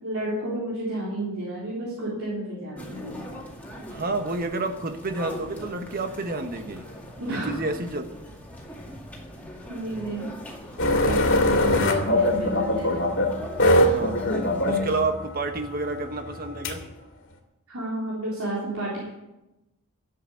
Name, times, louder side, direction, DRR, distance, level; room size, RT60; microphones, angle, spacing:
voice 1, 0.0-3.2 7.2-7.6 9.7-10.3 10.9-13.1 17.7-19.1, right 1 dB, 75° right, -7 dB, 3.6 m, -31 dB
sound 1, 2.8-15.0, equal, 5° left, 2.1 m, -40 dB
voice 2, 3.7-6.9 7.2-8.0 13.9-14.2 14.7-16.8, right 2 dB, 40° right, 7 dB, 1.1 m, -30 dB
sound 2, 10.8-16.8, left 1 dB, 60° left, 2.1 m, -23 dB
12.0 x 7.8 x 8.4 m, 0.97 s
head